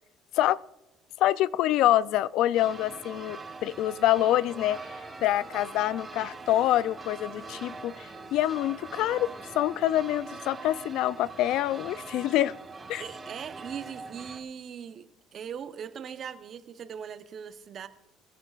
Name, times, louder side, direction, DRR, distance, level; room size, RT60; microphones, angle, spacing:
voice 1, 1.2-4.8 5.2-9.3 9.6-12.5 12.9-13.0, left 13 dB, 70° left, 19 dB, 0.4 m, -26 dB
sound 1, 2.5-14.4, right 4 dB, 25° right, 1.2 m, -43 dB
sound 2, 4.5-10.4, left 1 dB, 30° left, 4.8 m, -51 dB
voice 2, 13.0-17.9, right 7 dB, 50° right, 11 dB, 0.8 m, -40 dB
21.5 x 10.5 x 2.4 m, 0.92 s
cardioid pair, 105°, 0 cm